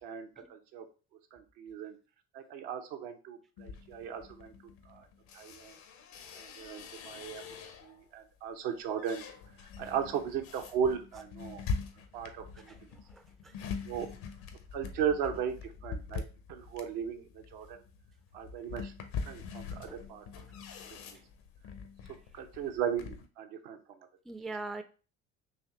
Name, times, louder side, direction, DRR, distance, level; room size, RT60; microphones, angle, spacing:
voice 1, 0.0-0.8 1.3-1.9 2.3-4.5 4.9-5.0 5.3-5.7 6.4-9.2 9.8-11.6 12.1-12.7 13.9-14.1 14.7-16.2 16.5-17.2 17.5-17.8 18.3-18.9 19.3-20.2 22.4-23.8, right 8 dB, 75° right, 5 dB, 0.8 m, -36 dB
sound 1, 3.6-8.1 8.5-23.3, left 5 dB, 70° left, 0.8 m, -43 dB
voice 2, 13.1-13.5 19.9-20.0 24.3-24.8, right 3 dB, ahead, 8 dB, 0.3 m, -41 dB
4.2 x 2.8 x 3.0 m, 0.35 s
hypercardioid pair, 65°, 36 cm